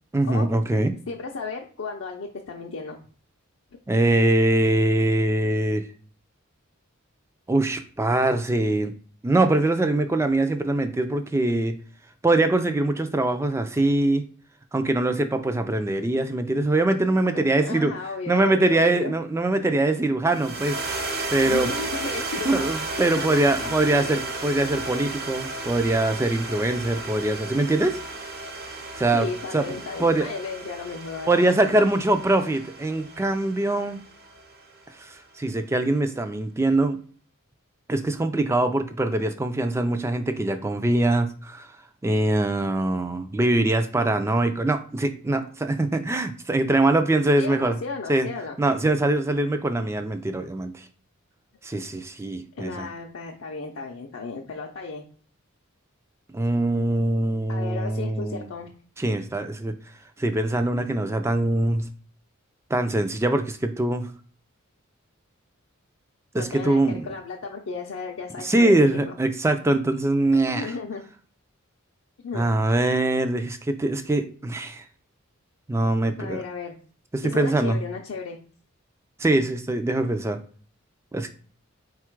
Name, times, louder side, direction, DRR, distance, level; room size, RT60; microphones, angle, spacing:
voice 1, 0.1-0.9 3.9-5.8 7.5-8.9 9.2-11.8 12.2-14.2 14.7-17.9 18.3-20.8 21.3-21.7 22.5-28.0 29.0-29.3 29.5-29.7 30.0-30.3 31.3-34.0 35.0-37.0 37.9-41.7 42.0-47.8 48.1-48.3 48.6-50.8 51.6-52.9 56.3-58.5 59.0-59.7 60.2-61.9 62.7-64.1 66.3-67.1 68.4-70.7 72.3-74.8 75.7-76.4 77.1-77.8 79.2-80.4 81.1-81.3, right 2 dB, 15° right, 8 dB, 0.3 m, -23 dB
voice 2, 1.1-3.0 17.3-19.1 21.5-22.7 23.0-24.1 29.1-31.3 47.4-48.6 52.6-55.1 57.5-58.7 66.4-69.2 70.5-71.0 72.2-72.5 76.2-76.7 77.2-78.4, left 4 dB, 65° left, 0 dB, 0.5 m, -34 dB
sound 1, 20.3-34.7, right 2 dB, 45° right, 0.7 m, -34 dB
4.3 x 2.3 x 4.4 m, 0.43 s
head